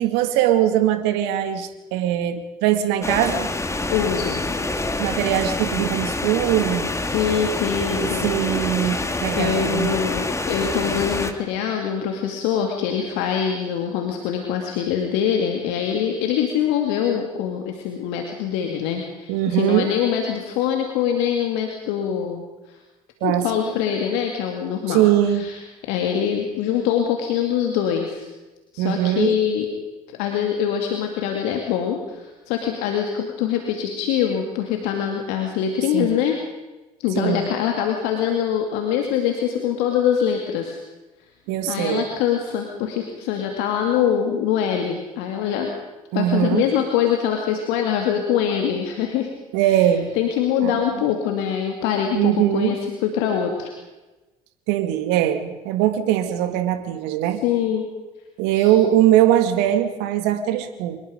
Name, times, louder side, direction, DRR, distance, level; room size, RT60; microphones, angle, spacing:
voice 1, 0.0-3.5 5.0-6.9 7.9-9.9 19.3-19.9 23.2-23.5 24.9-25.4 28.8-29.3 35.9-36.2 37.2-37.5 41.5-42.1 46.1-46.6 49.5-50.1 50.6-51.1 52.1-52.7 54.7-57.4 58.4-61.0, right 12 dB, 70° right, 9 dB, 2.1 m, -21 dB
sound 1, 3.0-11.3, left 2 dB, 15° left, 2.2 m, -26 dB
voice 2, 3.9-4.4 7.1-8.3 9.4-22.8 23.2-25.6 25.9-28.3 28.7-29.7 30.1-36.4 37.0-40.8 41.7-45.7 46.1-49.3 49.6-49.8 50.1-53.7 57.4-57.9 58.5-58.7, left 8 dB, 70° left, 3 dB, 2.4 m, -24 dB
25.0 x 21.5 x 5.1 m, 1.1 s
hypercardioid pair, 60°, 19 cm